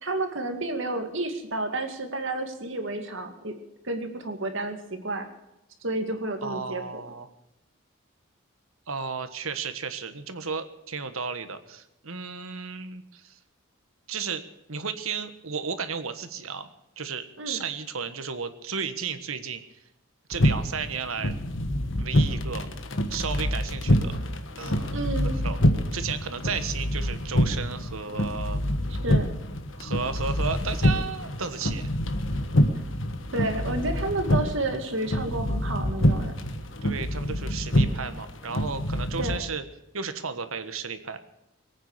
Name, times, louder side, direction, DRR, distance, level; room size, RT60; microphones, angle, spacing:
voice 1, 0.0-3.5 3.8-5.2 5.8-7.0 17.4-17.6 24.9-25.4 29.0-29.3 33.3-36.3 39.2-39.4, right 2 dB, 60° right, 6 dB, 2.2 m, -30 dB
voice 2, 6.4-7.3 8.9-13.4 14.1-14.4 14.7-16.7 17.0-19.6 20.3-21.3 22.0-22.7 23.1-24.2 24.6-25.6 25.9-28.6 29.8-31.8 36.8-39.6 39.9-41.2, right 5 dB, 75° right, 10 dB, 1.4 m, -33 dB
sound 1, 20.3-39.4, equal, 60° left, 1.4 m, -26 dB
21.5 x 9.3 x 6.7 m, 0.87 s
head